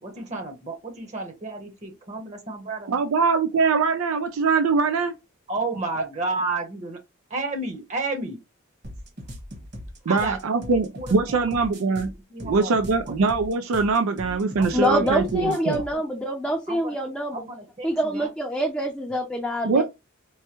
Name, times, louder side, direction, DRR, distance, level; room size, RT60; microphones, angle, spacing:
voice 1, 0.0-3.0 5.5-7.0 7.3-8.4 10.1-11.5 11.8-12.0 12.3-13.1 14.6-15.1 15.4-16.0 16.7-17.0 17.3-18.3, right 3 dB, 35° right, 0.9 m, -32 dB
voice 2, 2.9-5.1 10.1-12.1 12.4-15.8 19.6-19.8, right 4 dB, 70° right, 0.4 m, -22 dB
sound 1, 8.8-15.9, equal, 55° right, 1.5 m, -39 dB
voice 3, 14.7-17.4 17.8-19.8, equal, 5° left, 0.6 m, -25 dB
4.6 x 2.1 x 2.9 m
head